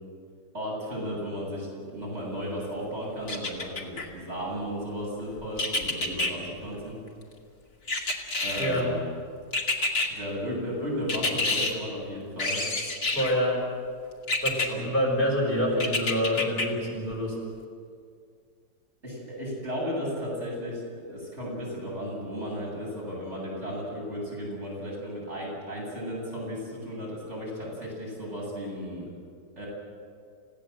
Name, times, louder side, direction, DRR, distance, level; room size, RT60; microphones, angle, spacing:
voice 1, 0.5-7.0 8.4-9.1 10.0-12.6 14.7-14.9 15.7-15.8 19.0-29.0 29.6-29.7, equal, 40° right, -4 dB, 8.2 m, -34 dB
sound 1, 3.3-4.1 5.6-6.3 7.9-8.8 9.5-10.1 11.1-11.7 12.4-13.4 14.3-14.7 15.8-16.7 17.1-17.2, left 2 dB, 60° left, 2.8 m, -28 dB
voice 2, 8.6-8.9 13.1-13.6 14.4-17.3, equal, 30° left, -4 dB, 6.0 m, -26 dB
30.0 x 16.5 x 7.8 m, 2.3 s
omnidirectional pair, 1.8 m